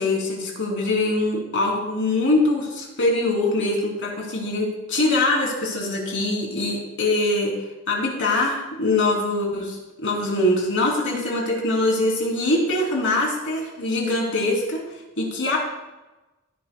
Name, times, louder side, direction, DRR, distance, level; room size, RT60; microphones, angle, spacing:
voice 1, 0.0-14.8 15.2-15.6, left 2 dB, 60° left, -1 dB, 3.3 m, -23 dB
15.5 x 11.0 x 2.3 m, 1.1 s
head